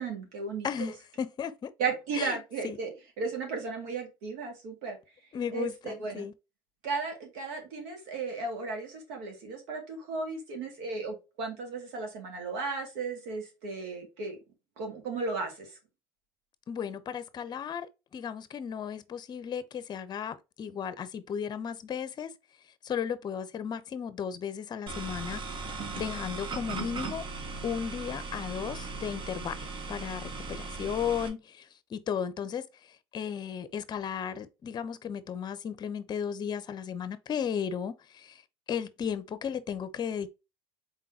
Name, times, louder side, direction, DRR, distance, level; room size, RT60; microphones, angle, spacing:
voice 1, 0.0-0.9 1.8-2.9 3.2-5.0 5.5-6.3 6.8-14.4 14.8-15.7, right 4 dB, 75° right, 2.1 m, -35 dB
voice 2, 0.6-1.7 2.1-2.4 2.6-2.8 5.3-6.3 16.7-22.3 22.8-25.4 26.0-27.3 27.6-38.4 38.7-40.3, left 7 dB, 35° left, 0.7 m, -35 dB
sound 1, 24.9-31.3, right 4 dB, 45° right, 1.2 m, -38 dB
4.2 x 3.8 x 2.7 m
supercardioid pair, 90°, 12 cm